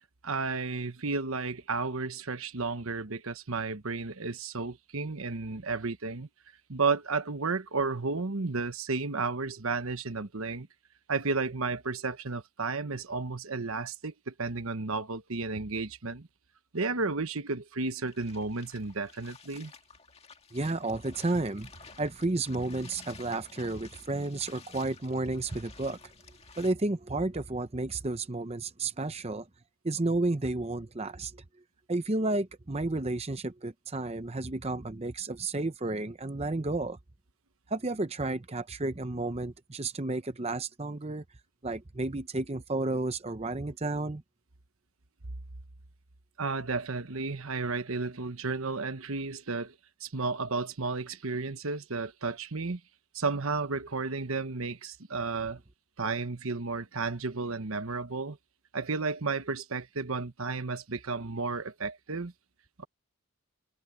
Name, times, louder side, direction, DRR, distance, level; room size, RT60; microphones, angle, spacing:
voice 1, 0.2-6.3 6.7-10.7 11.1-16.3 16.7-19.7 46.4-49.7 50.0-52.8 53.1-55.6 56.0-58.4 58.7-62.3 62.8-62.9, right 4 dB, 70° right, 1.2 m, -32 dB
sound 1, 18.0-26.7, left 5 dB, 25° left, 2.0 m, -53 dB
voice 2, 20.5-21.7 22.0-26.0 26.5-29.5 29.8-31.4 31.9-37.0 37.7-41.2 41.6-44.2, right 2 dB, 30° right, 0.7 m, -32 dB
head